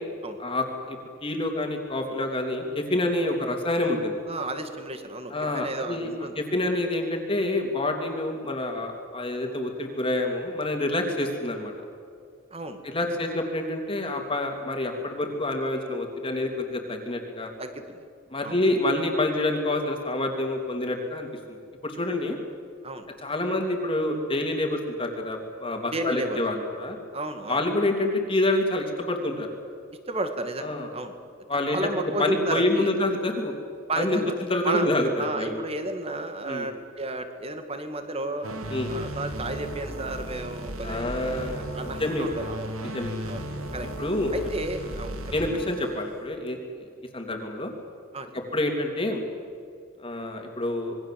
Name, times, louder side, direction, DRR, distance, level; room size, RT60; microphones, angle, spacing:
voice 1, 0.4-4.2 5.3-6.1 6.4-11.7 12.8-17.5 18.3-21.6 21.8-22.4 23.2-27.0 27.5-29.5 30.6-30.9 31.5-31.9 32.2-33.5 33.9-34.2 34.5-35.6 36.4-36.7 38.7-38.9 40.8-41.7 42.0-42.3 42.9-43.2 44.0-44.3 45.3-46.9 47.1-47.7 48.3-49.2 50.0-51.0, left 1 dB, 25° left, 3 dB, 2.8 m, -27 dB
voice 2, 4.3-6.4 12.5-12.8 17.6-18.1 18.4-18.6 22.8-23.1 25.9-26.4 27.1-27.6 30.1-31.1 31.5-32.9 33.9-34.3 34.6-34.9 35.2-38.5 38.9-42.7 43.3-43.5 43.7-43.9 44.3-45.2 48.1-48.3, right 2 dB, 30° right, 7 dB, 2.1 m, -32 dB
sound 1, 38.4-46.2, right 1 dB, 85° right, 2.4 m, -35 dB
26.5 x 21.5 x 7.7 m, 2.2 s
head